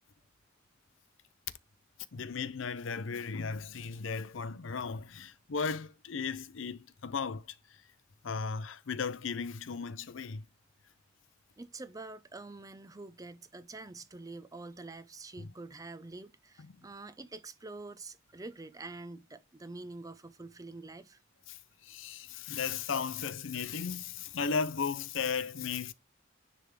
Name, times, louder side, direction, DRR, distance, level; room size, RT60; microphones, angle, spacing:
voice 1, 2.1-7.4 8.2-10.4 15.4-15.5 21.5-21.6 21.9-25.9, left 5 dB, 70° left, 0.6 m, -35 dB
voice 2, 11.6-21.2, right 3 dB, 20° right, 0.5 m, -46 dB
10.0 x 3.5 x 3.2 m
head